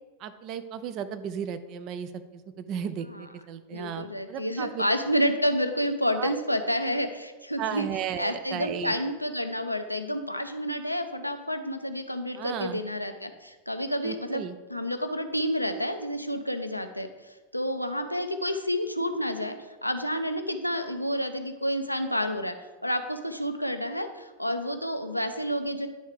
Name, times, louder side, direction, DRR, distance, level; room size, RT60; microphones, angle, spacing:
voice 1, 0.2-4.8 6.2-6.3 7.6-9.0 12.3-12.8 14.0-14.6, right 8 dB, 40° right, 11 dB, 0.5 m, -35 dB
voice 2, 3.7-7.9 8.2-14.4 14.7-19.6 19.8-22.6 22.8-25.9, equal, 90° left, 7 dB, 0.5 m, -29 dB
10.0 x 3.6 x 4.9 m, 1.2 s
figure-of-eight pair, 90°, 0 cm